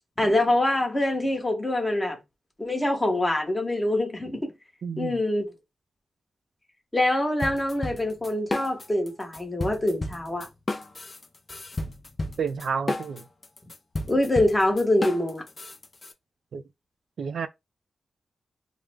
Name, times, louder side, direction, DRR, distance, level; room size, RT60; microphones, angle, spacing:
voice 1, 0.2-2.2 2.6-4.5 5.0-5.5 6.9-10.5 14.1-15.4, left 1 dB, 15° left, 1.0 m, -24 dB
voice 2, 4.8-5.2 12.4-13.3 16.5-16.6 17.2-17.5, right 6 dB, 80° right, 0.4 m, -30 dB
sound 1, 7.4-9.1 9.3-16.1, left 2 dB, 30° left, 0.5 m, -32 dB
3.3 x 2.0 x 3.4 m
wide cardioid pair, 145°, 0 cm